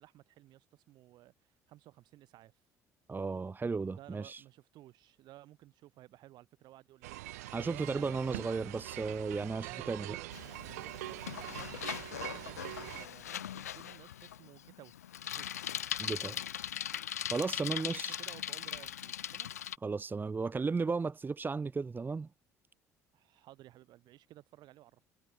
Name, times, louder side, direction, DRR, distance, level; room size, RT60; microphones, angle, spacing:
voice 1, 0.0-2.5 3.9-8.4 9.6-11.8 12.2-14.9 15.3-15.5 17.7-19.5 23.1-25.0, right 15 dB, 60° right, 6.9 m, -55 dB
voice 2, 3.1-4.4 7.5-10.1 16.0-16.4 17.3-18.2 19.8-22.3, right 4 dB, 25° right, 0.9 m, -35 dB
sound 1, 7.0-13.1, right 18 dB, 75° right, 0.5 m, -44 dB
Bicycle, 10.3-19.8, left 10 dB, 85° left, 1.1 m, -40 dB
hypercardioid pair, 55°, 8 cm